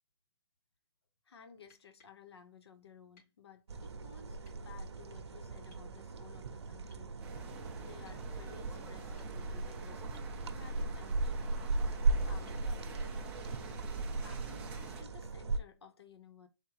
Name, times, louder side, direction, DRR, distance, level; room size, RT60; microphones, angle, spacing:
voice 1, 1.2-7.2 7.8-10.0 10.4-11.5 11.8-13.3 13.7-16.5, left 6 dB, 65° left, 0.7 m, -56 dB
sound 1, 1.7-2.2 3.1-3.4 4.4-4.6 5.7-5.9 6.9-7.1 8.0-8.3 9.0-9.6 10.1-10.4 12.5-12.7 14.5-14.6, left 2 dB, 40° left, 2.9 m, -67 dB
sound 2, 3.7-15.6, right 3 dB, 75° right, 0.8 m, -37 dB
sound 3, 7.2-15.0, right 4 dB, 10° right, 0.5 m, -50 dB
4.3 x 3.6 x 3.1 m
hypercardioid pair, 165°, 14 cm